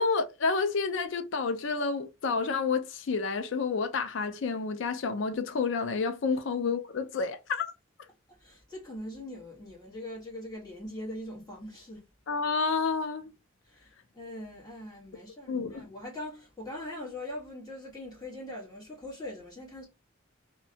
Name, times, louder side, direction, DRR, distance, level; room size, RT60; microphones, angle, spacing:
voice 1, 0.0-7.7 12.3-13.3 15.5-15.9, left 4 dB, 70° left, 0.4 m, -29 dB
voice 2, 8.3-12.1 13.6-19.8, left 1 dB, 20° left, 1.3 m, -42 dB
2.6 x 2.1 x 2.7 m
head